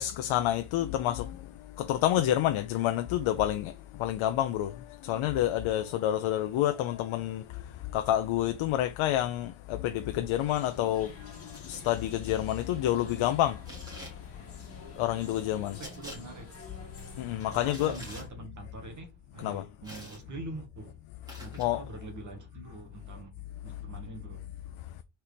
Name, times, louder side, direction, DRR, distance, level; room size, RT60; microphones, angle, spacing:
voice 1, 0.0-1.5 1.8-13.6 14.9-15.8 17.1-18.0 19.4-19.6 21.6-21.8, left 12 dB, 80° left, 0.7 m, -29 dB
sound 1, 10.4-18.3, left 3 dB, 30° left, 2.4 m, -48 dB
sound 2, 11.5-11.8 13.6-14.2 15.8-16.2 17.7-18.3 19.8-20.2 21.3-21.7, equal, 10° right, 2.5 m, -46 dB
voice 2, 15.7-16.6 17.4-21.0 21.4-24.4, right 2 dB, 35° right, 1.8 m, -44 dB
4.5 x 4.4 x 5.0 m
cardioid pair, 175°, 48 cm